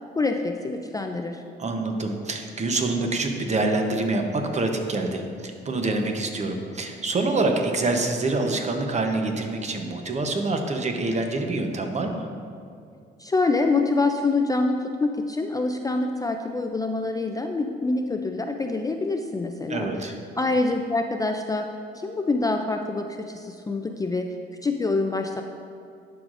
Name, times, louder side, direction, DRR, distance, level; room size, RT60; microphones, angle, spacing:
voice 1, 0.2-1.4 13.2-19.9 20.4-21.7 21.9-24.3 24.6-25.4, left 3 dB, 20° left, 4 dB, 0.3 m, -25 dB
voice 2, 1.6-12.3 19.7-20.1, right 2 dB, 35° right, 4 dB, 0.8 m, -26 dB
11.0 x 4.8 x 2.5 m, 2.4 s
cardioid pair, 90°, 20 cm